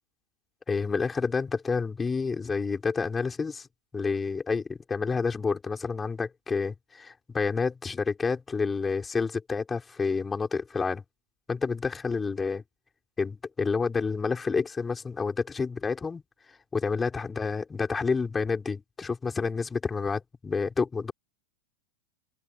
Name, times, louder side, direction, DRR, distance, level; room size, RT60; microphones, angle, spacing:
voice 1, 0.7-3.7 3.9-11.0 11.5-12.6 13.2-16.2 16.7-21.1, left 4 dB, 15° left, 6.1 m, -29 dB
open air
figure-of-eight pair, 90°, 0 cm